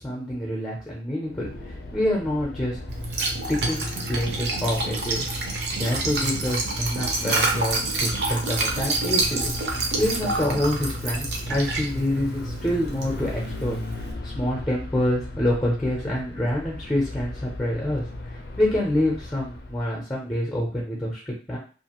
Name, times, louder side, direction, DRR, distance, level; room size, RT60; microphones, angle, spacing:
voice 1, 0.0-2.8 3.5-21.6, left 1 dB, 10° left, -3 dB, 0.5 m, -27 dB
sound 1, 1.2-20.0, left 2 dB, 60° left, 0.4 m, -38 dB
Liquid, 2.9-14.1, right 3 dB, 70° right, 0.6 m, -28 dB
2.5 x 2.4 x 2.9 m, 0.39 s
head